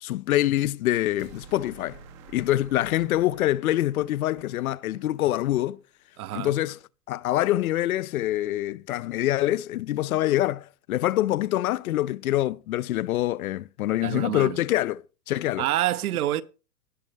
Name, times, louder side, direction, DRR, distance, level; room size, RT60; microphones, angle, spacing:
voice 1, 0.0-2.0 2.3-5.8 6.3-6.8 7.1-15.6, left 14 dB, 60° left, 0.5 m, -25 dB
sound 1, 1.2-5.5, right 5 dB, 20° right, 0.6 m, -50 dB
voice 2, 6.2-6.5 14.0-14.6 15.6-16.4, right 13 dB, 60° right, 0.8 m, -27 dB
18.0 x 6.3 x 3.3 m
hypercardioid pair, 165°, 49 cm